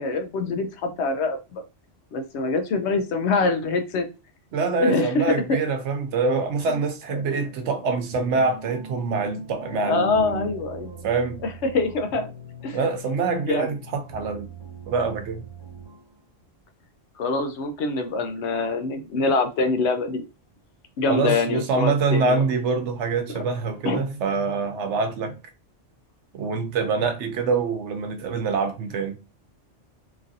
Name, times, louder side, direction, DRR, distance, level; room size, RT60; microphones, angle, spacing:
voice 1, 0.0-1.6 2.1-4.1 4.8-5.6 6.7-6.8 7.1-7.4 9.7-11.0 11.7-12.3 12.6-12.8 13.5-13.7 17.2-20.2 21.0-22.4 23.3-23.4 23.8-24.0, left 3 dB, 70° left, 0.9 m, -25 dB
voice 2, 4.5-10.5 11.0-11.4 12.7-14.5 14.9-15.4 21.1-25.4 26.3-29.1, right 4 dB, 75° right, 0.9 m, -25 dB
sound 1, 8.1-16.2, right 3 dB, 25° right, 0.6 m, -42 dB
3.0 x 2.5 x 2.6 m
omnidirectional pair, 1.2 m